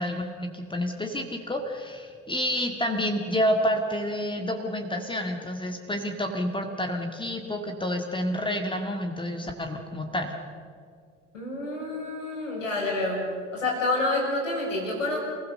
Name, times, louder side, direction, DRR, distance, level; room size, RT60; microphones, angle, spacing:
voice 1, 0.0-10.3, equal, 15° left, 4 dB, 2.2 m, -29 dB
voice 2, 11.3-13.2 13.5-15.2, left 2 dB, 80° left, -1 dB, 6.4 m, -28 dB
29.0 x 16.5 x 6.7 m, 2.2 s
figure-of-eight pair, 60°, 37 cm